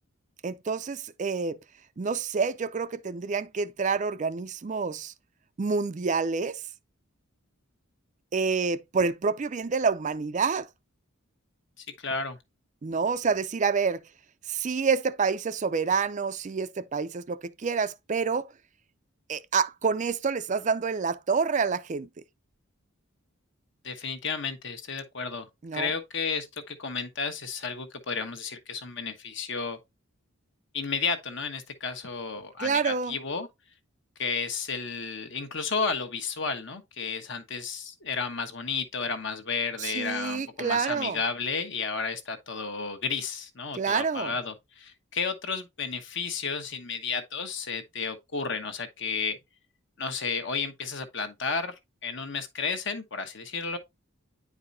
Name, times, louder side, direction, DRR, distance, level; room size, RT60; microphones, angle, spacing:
voice 1, 0.4-1.6 2.0-5.1 5.6-6.6 8.3-10.7 12.8-14.0 14.5-18.5 19.3-22.1 25.6-25.9 32.6-33.2 39.8-41.2 43.7-44.3, right 5 dB, 35° right, 0.4 m, -28 dB
voice 2, 11.8-12.4 23.8-29.8 30.7-33.5 34.2-49.4 50.0-51.7 52.0-53.8, left 5 dB, 60° left, 1.2 m, -32 dB
9.5 x 4.8 x 2.6 m
head